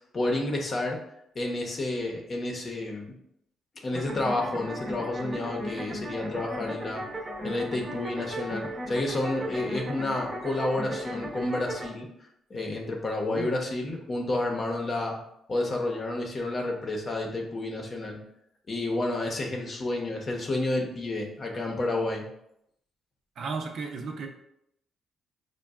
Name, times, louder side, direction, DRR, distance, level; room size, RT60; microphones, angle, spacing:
voice 1, 0.1-1.0 1.3-3.1 3.8-7.0 7.4-12.1 12.5-15.2 15.5-18.2 18.7-22.3, left 2 dB, 40° left, 1 dB, 0.8 m, -30 dB
sound 1, 3.9-11.9, equal, 25° right, 0.7 m, -36 dB
voice 2, 23.4-24.3, right 4 dB, 65° right, 3 dB, 0.5 m, -34 dB
5.3 x 2.2 x 2.3 m, 0.78 s
cardioid pair, 90°, 0 cm